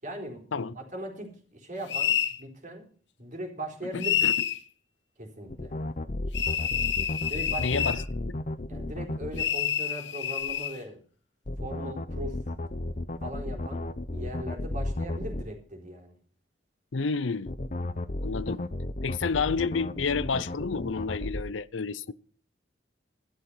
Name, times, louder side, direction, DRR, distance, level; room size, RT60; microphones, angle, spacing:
voice 1, 0.0-2.9 3.2-4.3 5.2-5.7 7.3-7.8 8.7-11.0 11.6-12.4 13.2-13.9 14.1-16.2, equal, 45° right, 4.0 m, -39 dB
sound 1, 1.9-2.4 4.0-4.6 6.3-8.0 9.4-10.8, left 9 dB, 65° left, 1.4 m, -28 dB
voice 2, 3.9-4.3 7.6-8.3 16.9-17.5 18.2-18.6 19.0-22.1, left 4 dB, 90° left, 0.6 m, -30 dB
sound 2, 5.5-9.4 11.5-15.4 17.5-21.4, left 1 dB, 40° left, 0.9 m, -33 dB
13.5 x 12.5 x 5.6 m
head